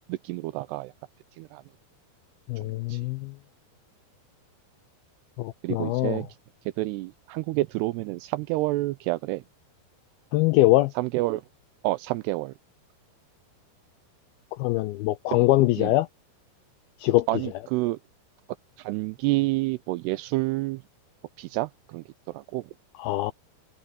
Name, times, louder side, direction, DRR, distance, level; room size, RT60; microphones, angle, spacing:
voice 1, 0.1-0.9 1.4-1.6 2.6-3.0 5.6-6.3 6.8-9.4 11.0-11.4 11.8-12.5 15.3-15.4 15.8-15.9 17.3-18.0 18.8-20.8 21.4-22.7, right 19 dB, 85° right, 2.4 m, -29 dB
voice 2, 2.5-3.3 5.4-6.2 10.3-10.9 14.6-16.1 17.0-17.3 23.0-23.3, left 17 dB, 85° left, 2.1 m, -23 dB
omnidirectional pair, 5.0 m